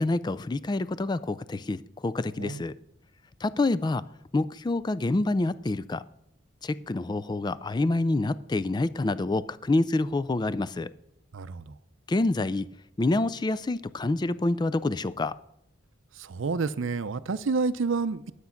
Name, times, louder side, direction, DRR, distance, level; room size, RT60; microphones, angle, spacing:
voice 1, 0.0-2.7 3.4-4.0 4.3-6.0 6.6-10.9 12.1-12.7 13.0-15.3, left 2 dB, 20° left, 0.3 m, -27 dB
voice 2, 11.3-11.8 16.2-18.3, right 4 dB, 75° right, 0.5 m, -29 dB
12.0 x 8.1 x 5.8 m
head